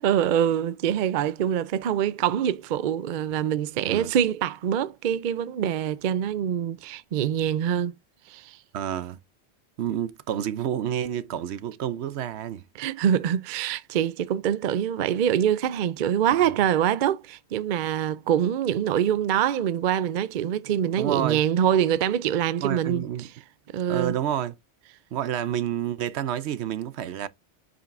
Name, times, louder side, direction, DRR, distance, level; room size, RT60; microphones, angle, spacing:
voice 1, 0.0-7.9 8.3-8.6 12.8-23.3 23.7-24.1, right 9 dB, 55° right, 0.6 m, -25 dB
voice 2, 8.7-9.2 9.8-12.6 16.4-16.6 21.0-21.4 22.6-23.3 23.9-24.6 25.1-27.3, right 10 dB, 75° right, 0.9 m, -29 dB
8.2 x 5.2 x 2.5 m
omnidirectional pair, 1.1 m